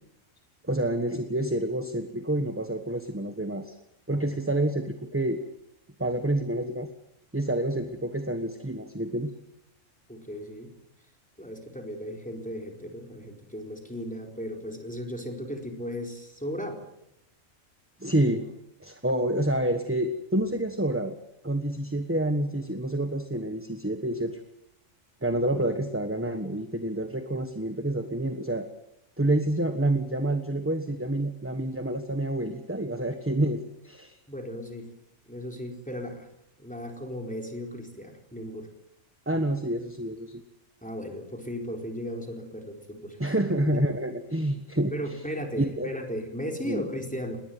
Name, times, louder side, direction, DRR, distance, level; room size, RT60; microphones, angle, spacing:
voice 1, 0.6-3.7 4.1-5.4 6.0-6.9 7.3-9.3 18.0-18.4 18.8-21.2 21.4-24.4 25.2-28.7 29.2-34.2 39.3-40.4 43.2-44.9 45.6-45.9 46.6-46.8, right 1 dB, 10° right, 8 dB, 1.3 m, -28 dB
voice 2, 10.1-10.8 11.4-16.8 34.3-34.9 35.2-36.3 36.6-38.7 39.3-39.4 40.8-43.6 44.9-47.4, equal, 5° left, 2 dB, 4.4 m, -36 dB
20.5 x 19.0 x 9.4 m, 0.84 s
omnidirectional pair, 1.3 m